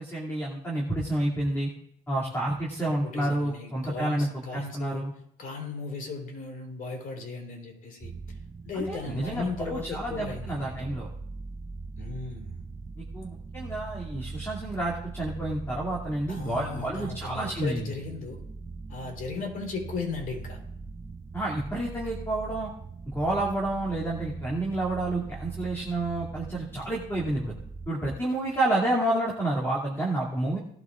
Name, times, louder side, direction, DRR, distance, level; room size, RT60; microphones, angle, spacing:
voice 1, 0.0-1.7 2.1-5.1 8.7-11.1 13.0-17.9 21.3-22.7 23.1-27.5 27.9-30.6, right 1 dB, 15° left, -4 dB, 2.6 m, -29 dB
voice 2, 3.0-5.0 5.4-8.1 8.6-10.9 12.0-12.6 16.3-18.4 18.9-20.6, left 4 dB, 55° left, 2 dB, 3.7 m, -36 dB
sound 1, 8.0-27.9, right 4 dB, 20° right, 0.4 m, -41 dB
18.5 x 12.0 x 2.5 m, 0.72 s
cardioid pair, 110°, 17 cm